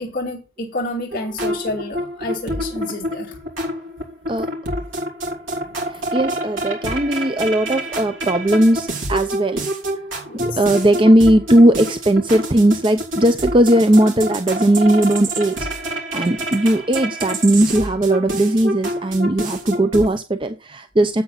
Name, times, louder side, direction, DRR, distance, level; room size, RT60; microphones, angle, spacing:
voice 1, 0.0-3.4 5.6-6.0 10.3-10.6, left 2 dB, 45° left, 2.5 m, -29 dB
sound 1, 1.1-20.1, right 1 dB, 65° right, 3.8 m, -27 dB
voice 2, 5.9-9.7 10.3-21.2, right 1 dB, 25° right, 0.6 m, -17 dB
9.7 x 8.4 x 4.1 m
head